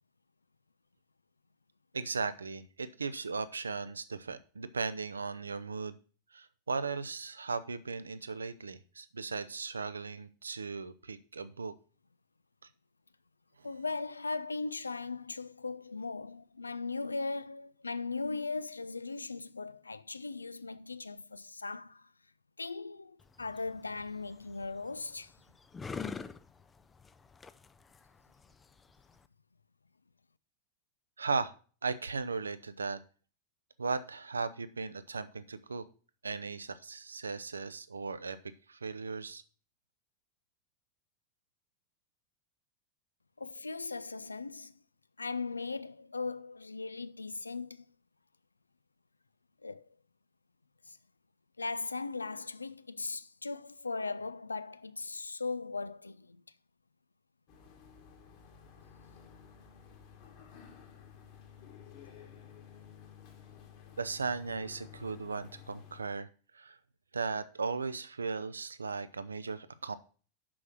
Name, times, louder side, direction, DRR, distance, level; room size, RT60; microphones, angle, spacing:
voice 1, 1.9-5.9 6.3-11.7 31.2-31.5 31.8-33.0 33.8-35.9 36.2-38.4 38.7-39.4 64.0-66.3 66.5-66.8 67.1-69.9, right 4 dB, 75° right, 0.6 m, -37 dB
voice 2, 13.6-22.1 22.6-25.3 43.4-44.7 45.2-47.8 49.6-49.9 50.9-51.0 51.6-56.4, left 3 dB, 80° left, 0.4 m, -38 dB
sound 1, 23.2-29.3, left 5 dB, 15° left, 0.4 m, -46 dB
sound 2, 57.5-66.0, left 8 dB, 45° left, 1.9 m, -53 dB
6.2 x 6.0 x 5.9 m
figure-of-eight pair, 90°, 0 cm